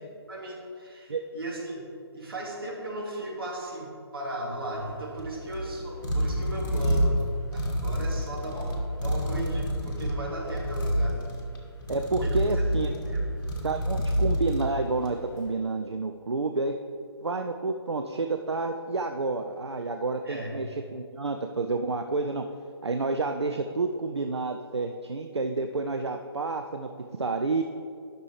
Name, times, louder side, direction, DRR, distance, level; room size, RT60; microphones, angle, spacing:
voice 1, 0.0-1.8 2.1-7.3 7.5-11.2 12.1-12.6 13.0-13.2 20.2-20.5, right 1 dB, 60° right, -3 dB, 2.1 m, -36 dB
sound 1, 4.7-15.3, equal, 45° left, 1.6 m, -29 dB
voice 2, 11.9-12.9 13.6-16.7 17.2-20.7 20.9-22.4 22.8-26.9 27.2-27.6, right 3 dB, 80° right, 6 dB, 0.5 m, -29 dB
11.5 x 6.0 x 3.3 m, 2.4 s
figure-of-eight pair, 140°, 14 cm